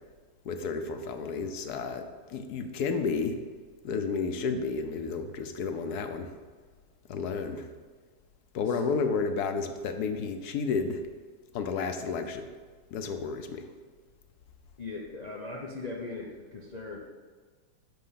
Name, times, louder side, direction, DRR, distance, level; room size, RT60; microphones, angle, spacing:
voice 1, 0.4-3.4 3.8-6.3 7.1-7.7 8.5-11.0 11.5-12.5 12.9-13.7, left 5 dB, 65° left, 7 dB, 1.1 m, -31 dB
voice 2, 14.8-17.0, left 3 dB, 85° left, -3 dB, 0.3 m, -39 dB
7.6 x 6.2 x 5.7 m, 1.5 s
omnidirectional pair, 2.2 m